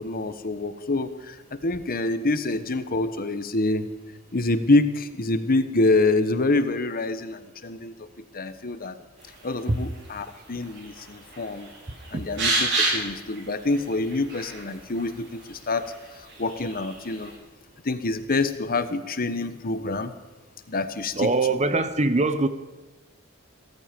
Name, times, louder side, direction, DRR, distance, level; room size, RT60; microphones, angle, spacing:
voice 1, 0.0-3.9 4.3-8.1 8.3-8.9 9.4-11.7 12.1-17.3 17.8-20.1 20.7-21.3, left 2 dB, 45° left, 11 dB, 1.1 m, -26 dB
sound 1, 9.2-17.4, right 2 dB, 55° right, 6.2 m, -32 dB
voice 2, 21.1-22.5, right 3 dB, 35° right, 11 dB, 1.0 m, -22 dB
17.0 x 14.0 x 5.3 m, 1.2 s
head